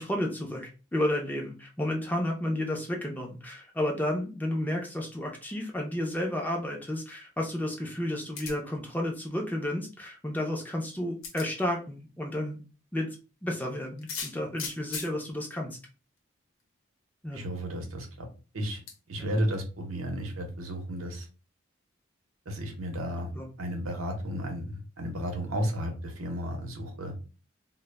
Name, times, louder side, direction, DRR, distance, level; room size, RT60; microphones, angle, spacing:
voice 1, 0.0-12.6 12.9-13.1 13.4-15.8 17.2-17.4 19.2-19.3 23.4-23.5, left 1 dB, 10° left, 0 dB, 0.4 m, -32 dB
sound 1, 8.4-8.8 10.4-10.5 11.2-11.5 14.0-15.1 16.2-16.3 16.6-16.7 18.9-19.0, left 5 dB, 85° left, 0.7 m, -37 dB
voice 2, 17.3-18.3 18.5-18.8 19.1-21.3 22.5-23.3 23.6-27.1, equal, 90° right, 3 dB, 0.7 m, -33 dB
2.0 x 2.0 x 3.2 m, 0.34 s
head